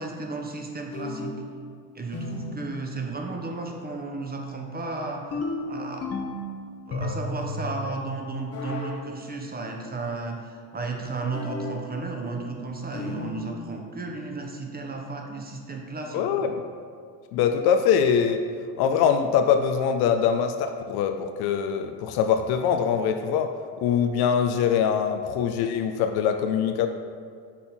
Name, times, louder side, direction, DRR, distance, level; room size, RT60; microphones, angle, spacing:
voice 1, 0.0-1.4 1.9-5.4 5.7-6.1 6.9-16.3, right 3 dB, 20° right, 2 dB, 0.9 m, -33 dB
sound 1, 0.9-1.5 2.1-2.6 5.3-6.5 6.9-7.6 8.5-9.0 11.3-11.8 12.9-13.4, left 2 dB, 35° left, 0.9 m, -32 dB
voice 2, 16.1-16.6 17.3-18.4 18.8-23.5 23.8-26.9, left 7 dB, 55° left, 7 dB, 0.5 m, -23 dB
5.6 x 4.2 x 4.3 m, 2.2 s
hypercardioid pair, 70°, 47 cm